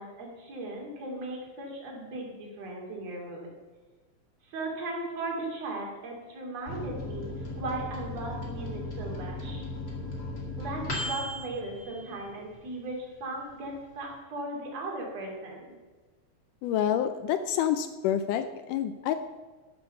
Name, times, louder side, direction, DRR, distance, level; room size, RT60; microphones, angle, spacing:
voice 1, 0.0-3.5 4.4-9.6 10.6-15.7, right 2 dB, 45° right, -1 dB, 3.5 m, -37 dB
Microwave oven, 6.7-12.7 13.1-13.2 13.5-14.1, left 2 dB, 30° left, 2.2 m, -37 dB
voice 2, 16.6-19.1, left 10 dB, 80° left, 10 dB, 1.8 m, -28 dB
12.5 x 7.1 x 6.6 m, 1.3 s
omnidirectional pair, 4.3 m